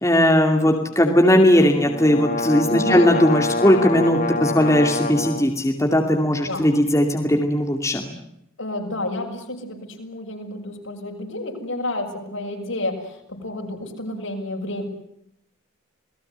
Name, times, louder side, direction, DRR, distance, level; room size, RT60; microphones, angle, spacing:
voice 1, 0.0-8.1, left 1 dB, 15° left, 3 dB, 2.4 m, -18 dB
sound 1, 1.6-5.5, left 2 dB, 40° left, 1.5 m, -26 dB
voice 2, 2.7-3.1 6.5-6.6 8.6-14.9, left 1 dB, 65° left, 2 dB, 6.7 m, -30 dB
29.0 x 20.0 x 8.1 m, 0.76 s
head